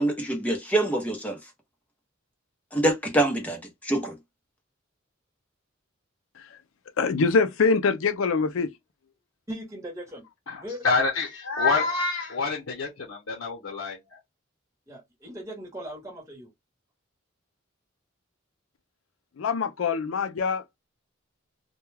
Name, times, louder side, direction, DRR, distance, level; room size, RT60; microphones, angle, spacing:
voice 1, 0.0-1.4 2.7-4.1, right 1 dB, 10° left, 0.7 m, -25 dB
voice 2, 7.0-8.7 19.4-20.8, left 4 dB, 70° left, 0.4 m, -24 dB
voice 3, 9.5-10.2 10.6-10.8 14.9-16.5, equal, 15° right, 1.0 m, -38 dB
voice 4, 10.5-14.2, left 4 dB, 90° left, 0.8 m, -27 dB
2.2 x 2.2 x 3.1 m
head